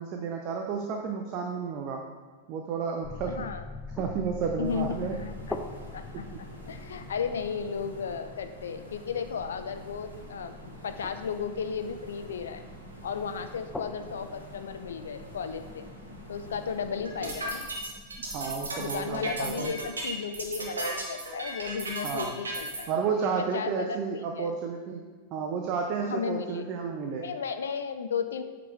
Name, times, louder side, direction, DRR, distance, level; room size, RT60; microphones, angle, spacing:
voice 1, 0.0-2.0 2.5-3.5 4.0-5.1 6.1-6.4 18.3-19.7 22.0-22.3 22.9-25.0 25.3-27.3, right 6 dB, 40° right, 3 dB, 0.7 m, -31 dB
sound 1, 3.0-19.9, left 2 dB, 5° left, 0.6 m, -45 dB
voice 2, 3.3-3.6 4.6-5.6 5.9-12.6 13.0-15.9 16.3-17.7 18.8-22.9 23.2-24.5 26.0-26.6 27.2-28.4, left 6 dB, 65° left, 9 dB, 0.5 m, -34 dB
sound 2, 4.6-17.2, equal, 85° left, 1.5 m, -48 dB
sound 3, 17.1-22.8, right 2 dB, 75° right, 1.4 m, -34 dB
8.3 x 5.3 x 4.5 m, 1.5 s
figure-of-eight pair, 90°, 0 cm